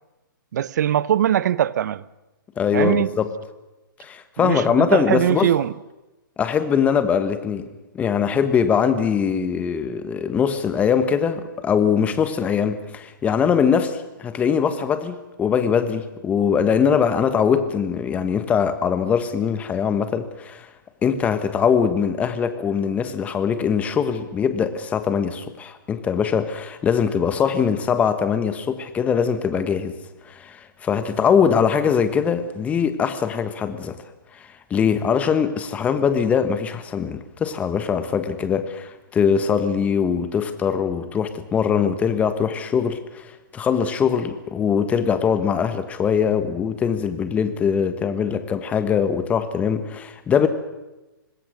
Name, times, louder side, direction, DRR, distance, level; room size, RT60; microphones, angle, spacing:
voice 1, 0.5-2.1 2.7-3.1 4.4-5.7, right 10 dB, 55° right, 0.8 m, -21 dB
voice 2, 2.6-3.3 4.0-5.5 6.4-7.7 7.9-20.7 21.0-29.9 30.3-34.0 34.7-43.3 43.5-50.5, left 7 dB, 10° left, 1.3 m, -22 dB
25.0 x 20.0 x 6.3 m
hypercardioid pair, 150°, 12 cm